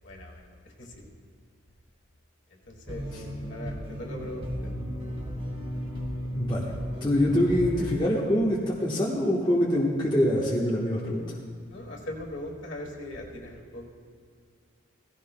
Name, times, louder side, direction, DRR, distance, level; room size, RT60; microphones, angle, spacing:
voice 1, 0.0-1.1 2.5-4.7 11.7-13.8, left 1 dB, 60° left, 0 dB, 1.9 m, -40 dB
sound 1, 2.9-8.0, equal, 25° right, 1.6 m, -34 dB
voice 2, 6.3-6.7 7.0-11.4, left 1 dB, 20° left, -5 dB, 1.1 m, -25 dB
17.5 x 15.0 x 2.2 m, 2.2 s
head